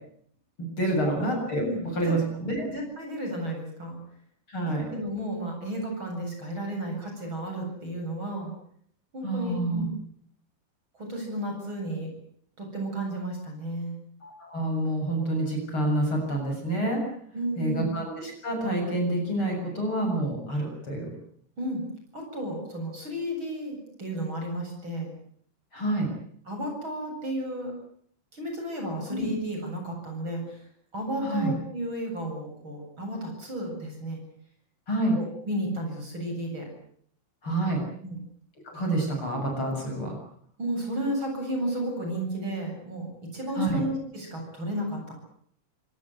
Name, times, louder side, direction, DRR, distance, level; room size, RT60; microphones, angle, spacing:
voice 1, 0.6-1.7 1.9-2.7 4.5-4.9 9.2-9.9 14.2-17.0 17.6-21.1 25.7-26.1 29.1-29.3 31.2-31.5 34.9-35.2 37.4-37.8 38.6-40.2 43.6-43.8, right 1 dB, 40° left, 2 dB, 8.1 m, -28 dB
voice 2, 1.6-2.1 2.7-4.0 4.6-8.5 9.1-9.9 10.9-12.1 12.6-14.0 17.3-17.9 21.6-21.8 22.1-25.1 26.5-27.7 28.3-30.6 30.9-34.2 35.1-36.7 38.0-38.2 40.6-45.1, right 1 dB, 35° right, 3 dB, 8.8 m, -33 dB
26.0 x 18.5 x 9.6 m, 0.64 s
omnidirectional pair, 3.7 m